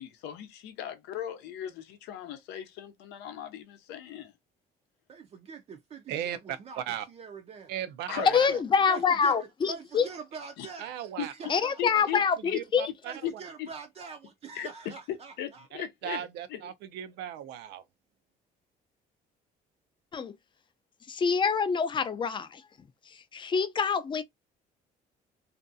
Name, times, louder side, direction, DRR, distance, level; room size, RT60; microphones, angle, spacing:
voice 1, 0.0-4.3 8.1-8.6 10.6-10.7 11.2-11.3 11.8-12.6 13.2-13.3 13.6-13.7 14.5-14.7 15.1-16.7, left 10 dB, 85° left, 0.6 m, -38 dB
voice 2, 5.1-6.8 7.1-7.7 8.2-8.3 8.5-8.6 8.9-12.1 13.0-15.7, right 5 dB, 40° right, 0.4 m, -44 dB
voice 3, 6.1-7.1 7.7-8.6 10.8-11.5 11.9-13.3 16.0-17.8, right 10 dB, 90° right, 0.5 m, -37 dB
voice 4, 8.3-10.1 11.5-12.9 20.1-20.3 21.1-22.6 23.3-24.2, left 6 dB, 30° left, 0.4 m, -26 dB
2.5 x 2.2 x 2.6 m
cardioid pair, 110°, 17 cm